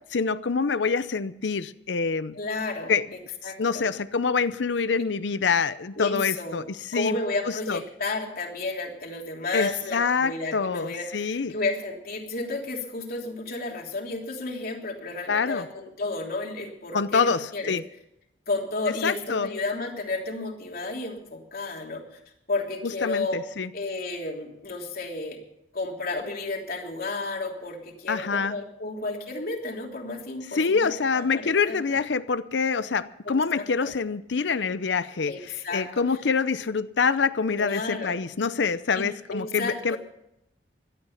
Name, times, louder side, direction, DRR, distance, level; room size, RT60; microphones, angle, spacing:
voice 1, 0.1-2.4 2.9-3.0 3.6-7.2 7.7-7.8 9.5-11.5 15.3-15.7 16.9-17.8 19.0-19.5 23.0-23.7 28.1-28.6 30.5-40.0, left 5 dB, 80° left, 14 dB, 0.6 m, -26 dB
voice 2, 2.3-2.9 3.4-3.9 6.0-6.7 6.9-17.7 18.5-22.2 22.5-23.4 23.7-25.4 25.7-31.9 33.5-33.9 35.3-35.9 37.6-38.2 38.9-39.0 39.3-40.0, left 3 dB, 55° left, 1 dB, 3.2 m, -32 dB
17.5 x 12.0 x 5.7 m, 0.83 s
head